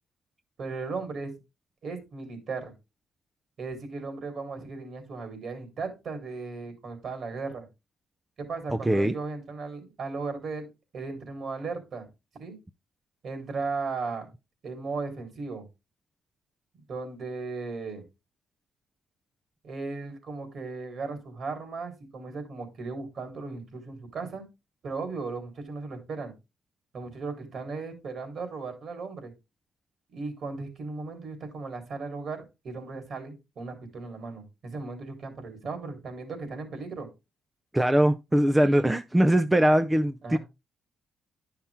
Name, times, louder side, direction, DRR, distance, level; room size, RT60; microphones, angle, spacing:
voice 1, 0.6-1.3 1.8-2.7 3.6-7.7 8.4-10.7 10.9-12.1 12.4-12.6 13.2-14.3 14.6-15.6 16.9-18.0 19.6-24.4 24.8-26.3 26.9-29.3 30.1-37.1 40.2-40.4, right 4 dB, 55° right, 3.7 m, -36 dB
voice 2, 37.7-40.4, right 1 dB, 10° right, 0.5 m, -21 dB
11.0 x 5.8 x 3.5 m
cardioid pair, 90°, 0 cm